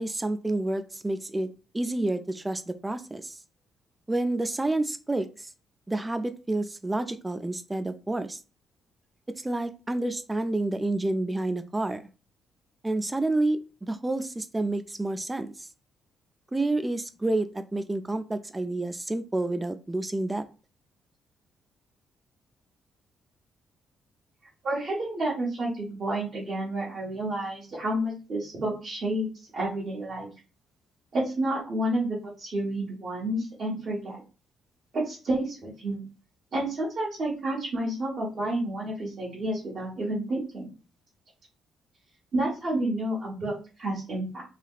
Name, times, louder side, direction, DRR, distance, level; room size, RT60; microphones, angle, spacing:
voice 1, 0.0-3.4 4.1-5.5 5.9-8.4 9.4-12.0 12.8-15.7 16.5-20.4, right 2 dB, 15° right, 10 dB, 0.3 m, -29 dB
voice 2, 24.6-30.3 31.1-34.2 34.9-36.0 36.5-40.7 42.3-43.5 43.8-44.4, right 1 dB, 50° right, -7 dB, 1.3 m, -30 dB
3.2 x 2.8 x 2.4 m, 0.33 s
cardioid pair, 90°, 0 cm